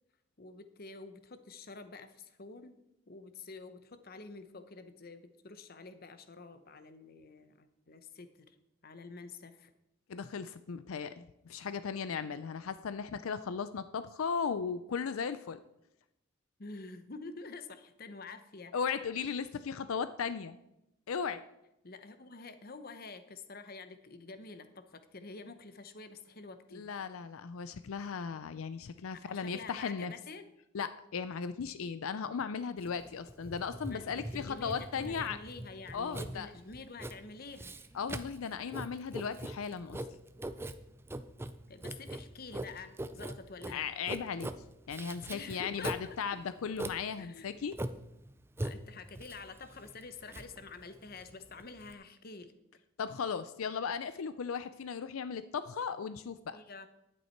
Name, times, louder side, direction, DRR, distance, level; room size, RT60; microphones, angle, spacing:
voice 1, 0.4-2.7 3.1-8.6 8.8-9.7 16.6-18.7 21.8-26.9 29.1-30.5 33.9-37.7 41.7-43.9 45.3-46.2 47.2-47.6 48.6-52.5 56.5-56.9, left 3 dB, 45° left, 10 dB, 0.8 m, -48 dB
voice 2, 10.1-15.6 18.7-20.6 21.1-21.4 26.7-30.1 30.7-35.4 35.9-36.5 37.9-40.0 43.7-44.5 44.9-47.7 53.0-56.6, left 6 dB, 80° left, 13 dB, 0.5 m, -37 dB
Writing, 32.8-51.9, right 1 dB, 10° right, 0.4 m, -42 dB
11.0 x 9.2 x 4.5 m, 0.86 s
head